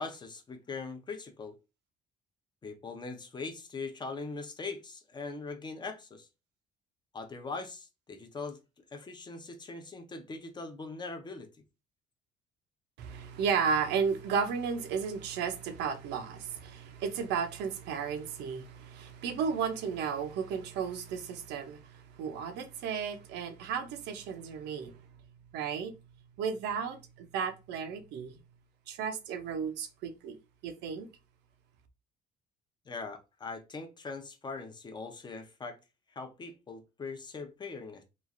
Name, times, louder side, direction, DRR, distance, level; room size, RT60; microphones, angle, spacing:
voice 1, 0.0-1.6 2.6-6.3 7.1-8.6 8.9-11.5 32.9-35.8 36.1-38.0, left 4 dB, 25° left, 0.5 m, -41 dB
voice 2, 13.0-25.0 25.5-26.0 26.4-28.3 28.9-31.1, right 6 dB, 80° right, 0.6 m, -34 dB
3.0 x 2.4 x 2.5 m
cardioid pair, 110°, 17 cm